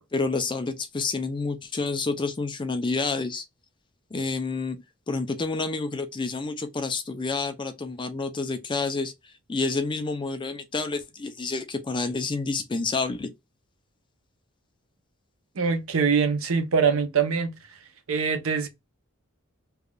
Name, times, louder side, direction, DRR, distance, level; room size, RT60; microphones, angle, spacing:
voice 1, 0.1-3.4 4.1-9.1 9.5-13.3, left 3 dB, 25° left, 0.4 m, -29 dB
voice 2, 15.6-17.5 18.1-18.7, right 6 dB, 75° right, 0.7 m, -23 dB
3.4 x 2.4 x 2.2 m
head